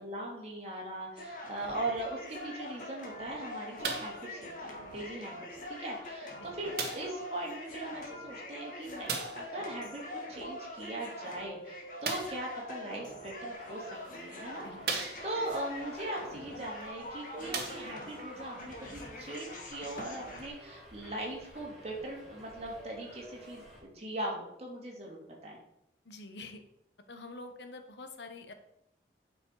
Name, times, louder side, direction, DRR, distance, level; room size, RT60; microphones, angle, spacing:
voice 1, 0.0-25.6, right 1 dB, 35° right, -2 dB, 2.8 m, -40 dB
sound 1, 1.2-20.5, left 1 dB, 50° left, 2.1 m, -44 dB
sound 2, 3.8-4.2 5.1-5.2 6.8-7.2 9.1-9.5 12.0-12.4 13.4-13.5 14.1-14.2 14.8-15.5 16.8-16.9 17.4-18.2 19.0-19.1, right 5 dB, 60° right, 1.7 m, -36 dB
Subway metro underground, 13.5-23.8, equal, ahead, 4.0 m, -53 dB
voice 2, 26.0-26.6 27.1-28.5, left 3 dB, 80° left, 7 dB, 1.2 m, -46 dB
9.5 x 6.2 x 4.8 m, 0.82 s
head